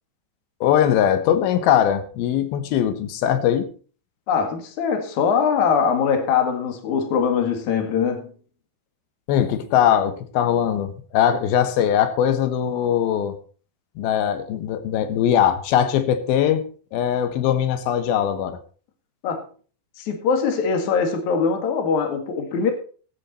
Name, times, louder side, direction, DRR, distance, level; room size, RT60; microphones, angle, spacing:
voice 1, 0.6-3.7 9.3-13.4 14.0-16.6 16.9-18.6, left 9 dB, 70° left, 2.7 m, -20 dB
voice 2, 4.3-8.3 19.2-19.4 20.0-22.7, left 6 dB, 50° left, 2.7 m, -22 dB
16.0 x 9.0 x 4.2 m
omnidirectional pair, 5.2 m